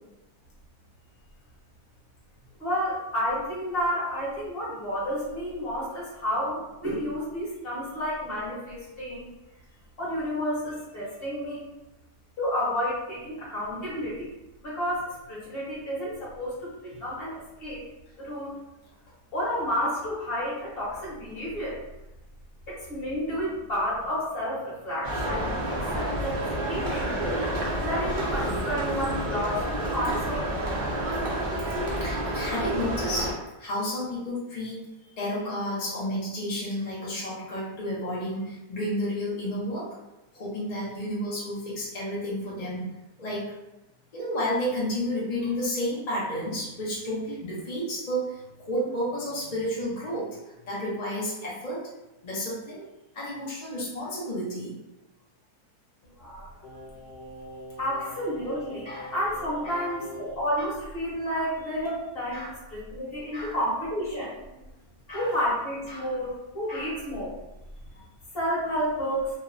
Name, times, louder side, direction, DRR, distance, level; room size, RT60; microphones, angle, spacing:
voice 1, 2.6-9.3 10.0-11.7 12.4-14.3 14.6-16.7 17.0-17.8 18.2-18.5 19.3-21.8 22.7-27.2 27.8-30.5 56.0-56.5 57.8-64.6 65.1-67.3 68.3-69.3, equal, 40° left, -8 dB, 1.1 m, -31 dB
sound 1, 25.0-33.3, right 1 dB, 80° right, 0.4 m, -29 dB
voice 2, 32.0-39.9 40.3-43.5 44.1-51.8 52.2-52.8 53.1-54.7 58.0-58.1 58.8-59.1 59.6-59.9 61.3-61.5 62.3-62.5 63.3-63.6 65.1-65.3 65.9-66.1 66.7-66.9, equal, 65° left, -7 dB, 0.4 m, -31 dB
Singing, 56.6-60.5 60.8-60.9, left 1 dB, 90° left, 1.2 m, -43 dB
3.1 x 2.0 x 2.4 m, 0.97 s
omnidirectional pair, 1.8 m